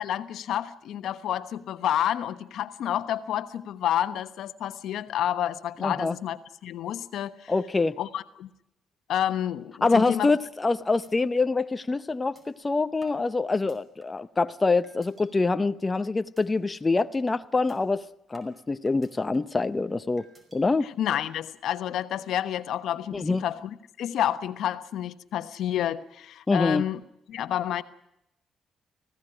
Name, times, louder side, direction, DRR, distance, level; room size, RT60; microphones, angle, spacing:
voice 1, 0.0-7.5 8.0-8.5 9.1-10.3 20.8-27.0 27.3-27.8, left 11 dB, 75° left, 11 dB, 1.1 m, -29 dB
voice 2, 5.8-6.2 7.5-8.0 9.8-18.0 18.3-20.3 20.5-20.9 23.1-23.4 26.5-26.9, left 3 dB, 25° left, 11 dB, 0.7 m, -25 dB
sound 1, 10.4-10.7 11.0-11.1 11.5-11.6 12.4-12.5 13.0-14.3 14.8-15.3 15.7-15.9 16.4-16.5 16.9-17.1 17.7-17.8 18.3-19.6 20.2-20.6, right 1 dB, 25° right, 5.4 m, -55 dB
20.0 x 16.0 x 10.0 m, 0.83 s
cardioid pair, 90°, 0 cm